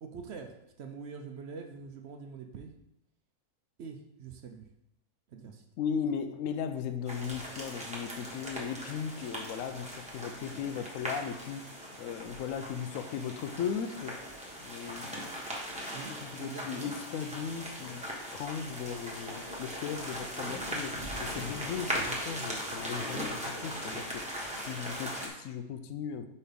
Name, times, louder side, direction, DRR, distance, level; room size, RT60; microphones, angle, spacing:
voice 1, 0.0-2.7 3.8-4.7 5.3-5.6 10.3-10.9 15.9-16.1 16.4-16.9, right 5 dB, 60° right, 5 dB, 0.8 m, -44 dB
voice 2, 5.8-11.6 12.0-14.1 14.6-15.1 15.8-18.0 18.3-20.9 21.2-24.2 24.6-26.3, left 7 dB, 70° left, 9 dB, 0.9 m, -37 dB
sound 1, 7.1-25.3, equal, 5° right, 1.0 m, -39 dB
4.7 x 4.2 x 5.1 m, 0.83 s
omnidirectional pair, 1.6 m